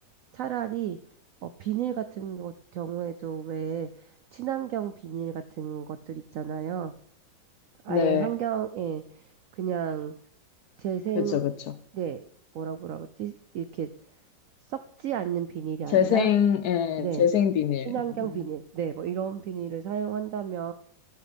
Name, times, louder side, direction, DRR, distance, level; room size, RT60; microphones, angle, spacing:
voice 1, 0.3-1.0 1.4-3.9 4.3-6.9 7.8-9.2 9.6-10.1 10.8-11.4 11.9-12.3 12.5-13.9 14.7-16.3 17.0-17.3 17.9-20.7, right 9 dB, 85° right, 0.7 m, -32 dB
voice 2, 7.9-8.3 11.2-11.7 15.9-17.9 18.2-18.4, left 9 dB, 70° left, 0.9 m, -24 dB
13.0 x 11.5 x 3.4 m
omnidirectional pair, 2.0 m